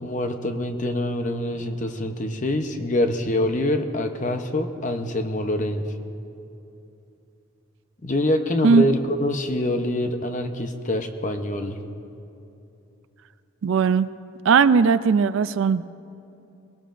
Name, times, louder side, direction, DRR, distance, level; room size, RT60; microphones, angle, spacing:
voice 1, 0.0-5.8 8.0-11.8, left 1 dB, 35° left, 6 dB, 0.8 m, -25 dB
voice 2, 13.6-14.1 14.4-15.8, right 5 dB, 65° right, 14 dB, 0.4 m, -18 dB
22.0 x 18.0 x 2.5 m, 2.8 s
head